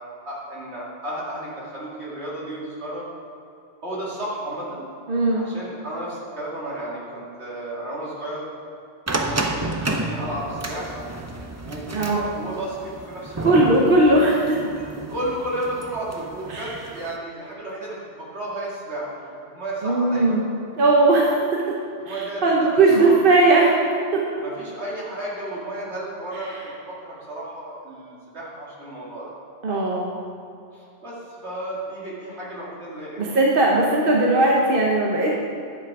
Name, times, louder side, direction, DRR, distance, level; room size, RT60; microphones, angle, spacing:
voice 1, 0.3-3.0 3.8-4.8 5.3-8.5 9.1-11.1 11.6-13.5 15.1-19.2 19.5-20.5 22.0-23.2 24.4-29.3 30.7-33.4, right 1 dB, 70° right, -6 dB, 2.6 m, -33 dB
voice 2, 5.1-5.4 11.9-12.2 13.4-14.6 16.5-16.7 19.8-20.4 20.8-21.4 22.1-23.7 24.1-24.2 29.6-30.1 33.2-35.3, right 2 dB, 50° right, -2 dB, 1.1 m, -18 dB
sound 1, 9.1-17.2, right 2 dB, 25° right, 0.4 m, -31 dB
10.5 x 7.5 x 4.7 m, 2.7 s
omnidirectional pair, 1.2 m